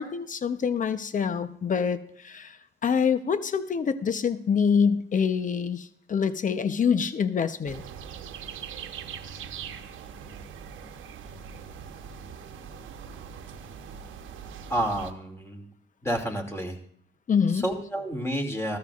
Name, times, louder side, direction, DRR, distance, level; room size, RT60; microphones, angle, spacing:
voice 1, 0.0-2.6 2.8-7.8 17.3-17.6, left 6 dB, 40° left, 11 dB, 0.9 m, -25 dB
sound 1, 7.7-15.1, right 7 dB, 80° right, 1.1 m, -41 dB
voice 2, 14.7-15.7 16.0-16.8 17.5-18.8, right 1 dB, 15° left, 3 dB, 2.6 m, -30 dB
14.5 x 13.5 x 2.5 m, 0.64 s
cardioid pair, 90°, 20 cm